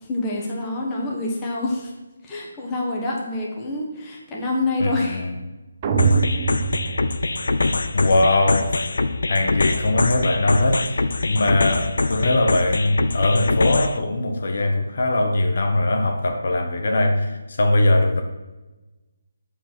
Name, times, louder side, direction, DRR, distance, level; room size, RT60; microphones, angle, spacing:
voice 1, 0.0-1.9 2.2-5.3, left 2 dB, 15° left, -3 dB, 1.4 m, -26 dB
voice 2, 4.8-5.3 7.9-8.7 9.3-18.2, left 2 dB, 60° left, 4 dB, 1.1 m, -21 dB
sound 1, 5.8-8.0, right 5 dB, 25° right, 0.7 m, -23 dB
sound 2, 6.0-14.0, left 3 dB, 80° left, 0.6 m, -24 dB
7.9 x 5.0 x 6.2 m, 1.1 s
hypercardioid pair, 165°, 0 cm